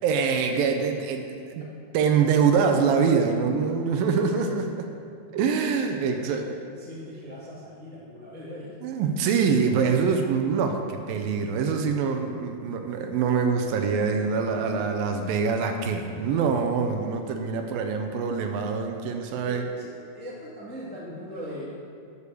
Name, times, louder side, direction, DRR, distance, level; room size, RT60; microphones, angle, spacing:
voice 1, 0.0-1.7 1.9-4.9 5.3-6.4 8.8-19.6, right 5 dB, 80° right, 5 dB, 2.4 m, -24 dB
voice 2, 3.8-4.5 5.9-6.4 6.8-8.8 14.2-14.8 19.4-21.7, left 1 dB, 5° left, -6 dB, 0.6 m, -40 dB
9.5 x 6.7 x 7.0 m, 2.4 s
omnidirectional pair, 4.3 m